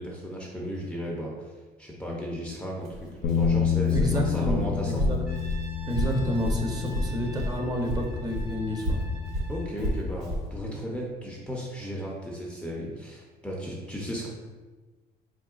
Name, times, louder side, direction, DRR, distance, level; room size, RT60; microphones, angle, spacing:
voice 1, 0.0-1.5 1.8-5.1 9.5-14.3, equal, 5° left, -3 dB, 0.6 m, -35 dB
Walk footsteps, 2.8-7.6 7.8-10.5, equal, 80° right, 0.8 m, -30 dB
Bass guitar, 3.2-9.5, left 8 dB, 70° left, 0.4 m, -30 dB
voice 2, 3.9-5.2 5.9-9.0, equal, 25° right, 0 dB, 0.8 m, -29 dB
Brass instrument, 5.3-10.1, right 2 dB, 60° right, 1.3 m, -47 dB
4.3 x 3.7 x 2.4 m, 1.3 s
cardioid pair, 110°, 17 cm